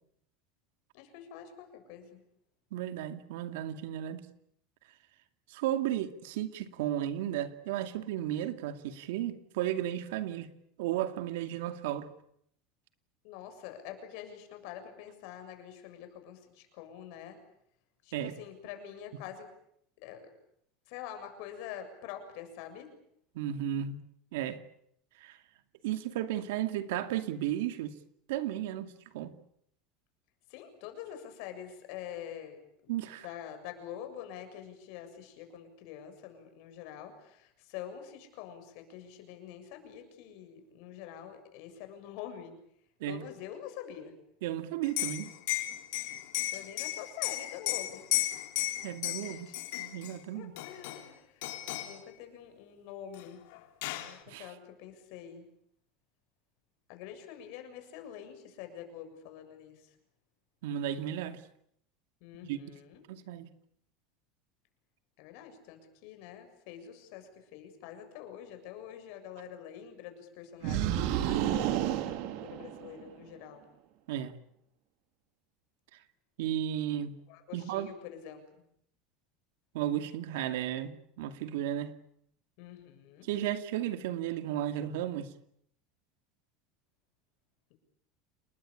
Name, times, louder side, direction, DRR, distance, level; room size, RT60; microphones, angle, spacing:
voice 1, 0.9-2.2 13.2-17.4 18.0-19.5 20.0-20.3 20.9-22.9 30.5-32.9 33.2-42.5 43.1-44.1 46.5-48.1 49.2-49.6 50.3-53.4 54.0-55.5 56.9-60.0 62.2-63.0 65.2-73.6 77.3-78.6 82.6-83.3, left 9 dB, 60° left, 7.2 m, -46 dB
voice 2, 2.7-4.2 5.5-10.5 10.8-12.1 18.1-18.3 23.3-24.0 24.3-24.6 25.2-25.4 25.8-27.9 28.3-29.3 32.9-33.3 43.0-43.2 44.4-45.3 48.8-49.5 49.8-50.5 54.3-54.5 60.6-61.4 62.4-62.6 63.1-63.5 74.1-74.3 76.4-77.1 77.5-77.9 79.7-81.9 83.2-85.3, right 11 dB, 80° right, 2.4 m, -34 dB
Liquid, 44.8-50.1 50.6-51.1 51.4-52.0 53.2-53.3 53.5-54.2, left 17 dB, 75° left, 3.7 m, -34 dB
sound 1, 70.6-73.1, right 11 dB, 60° right, 2.7 m, -31 dB
30.0 x 20.5 x 8.7 m
supercardioid pair, 165°, 0 cm